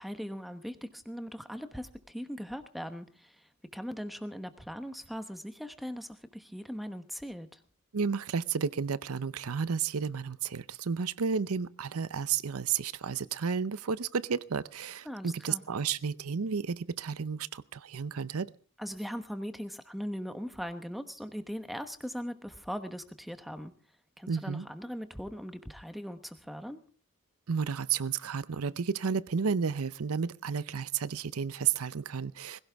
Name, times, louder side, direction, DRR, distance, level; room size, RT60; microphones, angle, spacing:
voice 1, 0.0-7.6 15.0-15.6 18.8-23.7 24.2-26.8, equal, ahead, 1.0 m, -40 dB
voice 2, 7.9-18.5 24.3-24.7 27.5-32.6, right 6 dB, 85° right, 0.6 m, -32 dB
20.0 x 16.5 x 3.5 m
head